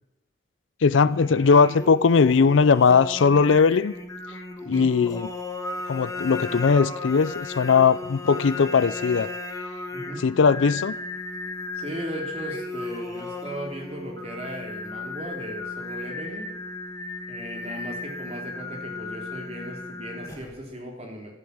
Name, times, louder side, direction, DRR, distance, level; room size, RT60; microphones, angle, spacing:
voice 1, 0.8-3.9 4.7-5.3 5.9-9.3 10.2-10.9, left 5 dB, 75° left, 0.4 m, -19 dB
Singing, 1.1-20.7, left 2 dB, 15° left, 1.5 m, -35 dB
voice 2, 4.6-4.9 9.9-10.2 11.7-16.5 17.3-21.3, equal, 30° right, 3.6 m, -37 dB
13.5 x 11.5 x 8.7 m
head